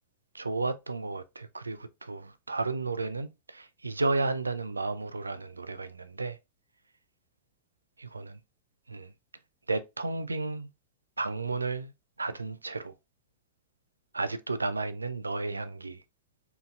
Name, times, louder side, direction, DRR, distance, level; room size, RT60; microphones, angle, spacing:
voice 1, 0.3-6.4 8.0-8.4 8.9-9.1 9.7-10.7 11.2-11.9 12.2-12.9 14.1-16.0, right 3 dB, 80° right, 0.4 m, -33 dB
4.5 x 3.9 x 2.3 m
figure-of-eight pair, 90°, 0 cm